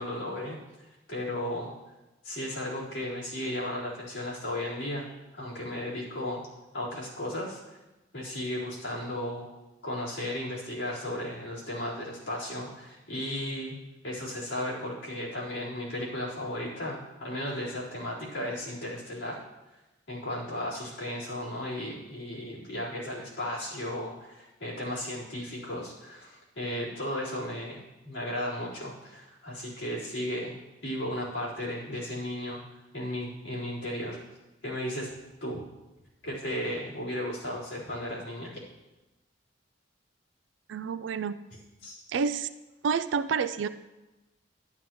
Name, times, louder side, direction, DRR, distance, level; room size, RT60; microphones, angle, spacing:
voice 1, 0.0-1.7 2.2-5.0 5.3-6.4 6.7-7.6 8.1-9.5 9.8-13.8 14.0-19.4 20.1-30.5 30.8-32.6 32.9-34.2 34.6-35.1 35.4-35.6 36.2-38.6 41.8-42.0, left 1 dB, 80° left, -8 dB, 4.1 m, -35 dB
voice 2, 40.7-41.4 42.1-42.5 42.8-43.7, right 6 dB, 70° right, 12 dB, 0.3 m, -28 dB
11.5 x 11.0 x 3.1 m, 1.1 s
head